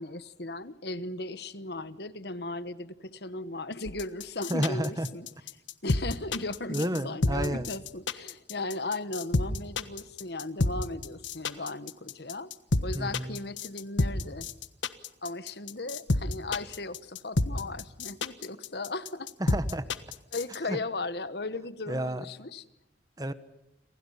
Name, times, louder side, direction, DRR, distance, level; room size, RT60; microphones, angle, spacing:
voice 1, 0.0-5.3 5.8-12.5 12.8-14.5 15.2-19.3 20.3-22.6, left 2 dB, 60° left, 14 dB, 1.2 m, -37 dB
sound 1, 3.8-20.6, left 2 dB, 85° left, 1.4 m, -29 dB
voice 2, 4.5-5.1 6.7-7.7 12.9-13.4 19.4-19.8 20.7-20.8 21.9-22.2 23.2-23.3, right 1 dB, 20° right, 12 dB, 1.2 m, -30 dB
29.0 x 26.5 x 5.7 m, 0.91 s
head